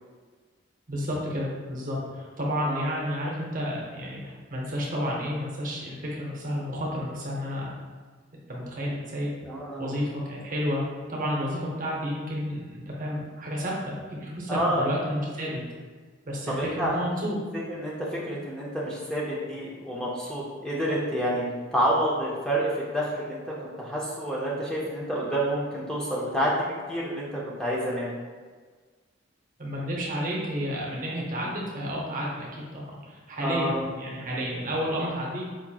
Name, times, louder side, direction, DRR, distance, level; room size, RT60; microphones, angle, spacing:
voice 1, 0.9-7.7 8.5-9.3 9.8-10.8 11.1-15.6 16.2-17.4 29.6-35.4, equal, 45° right, -3 dB, 0.8 m, -31 dB
voice 2, 9.5-9.9 14.5-14.9 16.5-16.9 17.7-21.4 21.7-28.1 33.4-33.9, equal, 5° left, -6 dB, 0.5 m, -28 dB
4.6 x 3.0 x 2.2 m, 1.5 s
head